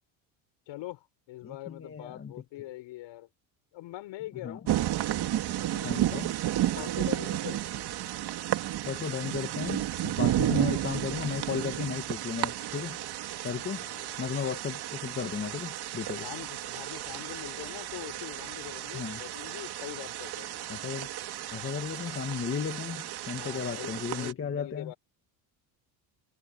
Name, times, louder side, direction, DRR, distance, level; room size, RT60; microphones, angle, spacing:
voice 1, 0.7-3.3 3.7-4.7 5.7-6.0 6.7-7.6 10.3-10.6 13.5-14.2 16.1-20.7 23.3-24.9, left 16 dB, 65° left, 6.4 m, -43 dB
voice 2, 1.4-2.3 4.4-4.6 5.8-6.3 8.9-13.0 13.4-13.8 14.2-16.3 18.9-19.2 20.7-21.1 21.5-24.9, left 7 dB, 25° left, 2.2 m, -35 dB
sound 1, 4.7-24.3, right 13 dB, 50° right, 2.3 m, -33 dB
cardioid pair, 145°, 49 cm